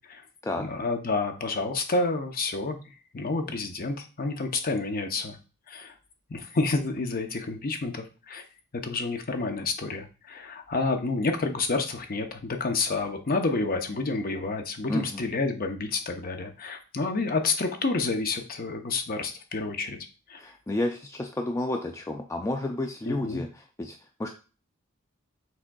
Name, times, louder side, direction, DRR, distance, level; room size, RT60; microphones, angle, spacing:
voice 1, 0.6-2.8 3.1-5.4 5.7-5.9 6.3-8.4 8.8-20.0 20.3-20.4 23.1-23.4, left 3 dB, 45° left, 6 dB, 0.6 m, -29 dB
voice 2, 14.9-15.2 20.4-24.3, left 1 dB, 15° left, 3 dB, 0.3 m, -31 dB
6.1 x 3.6 x 2.2 m, 0.34 s
head